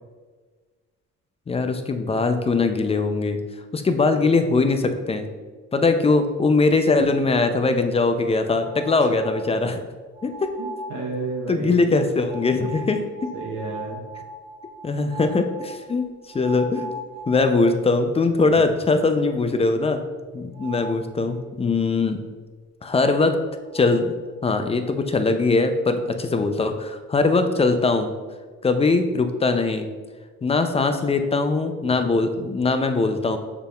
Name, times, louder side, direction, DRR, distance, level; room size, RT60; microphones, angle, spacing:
voice 1, 1.5-3.4 3.7-5.3 5.7-9.8 10.2-10.5 11.5-13.0 14.8-16.1 16.3-16.9 17.3-20.0 20.3-22.2 22.8-23.4 23.7-24.1 24.4-28.1 28.6-29.9 30.4-33.4, left 3 dB, 20° left, 7 dB, 0.4 m, -21 dB
sound 1, 8.6-9.7 10.1-11.1 12.3-17.9 18.3-18.4 18.8-18.9 20.5-21.1 23.3-23.4 23.7-24.1, right 1 dB, 55° left, 1.0 m, -39 dB
voice 2, 10.6-11.9 13.3-14.0 18.6-18.7, right 3 dB, 75° right, -1 dB, 1.0 m, -31 dB
6.6 x 3.5 x 2.3 m, 1.4 s
cardioid pair, 90°, 30 cm